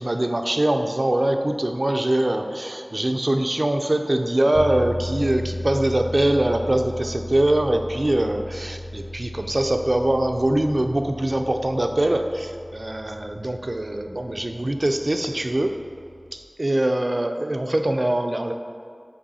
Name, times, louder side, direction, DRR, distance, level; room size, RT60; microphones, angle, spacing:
voice 1, 0.0-15.7 16.3-18.5, right 1 dB, 55° right, 6 dB, 0.4 m, -23 dB
sound 1, 4.5-16.4, left 1 dB, 60° left, 0.5 m, -36 dB
7.8 x 3.1 x 4.1 m, 2.2 s
wide cardioid pair, 45°, 0 cm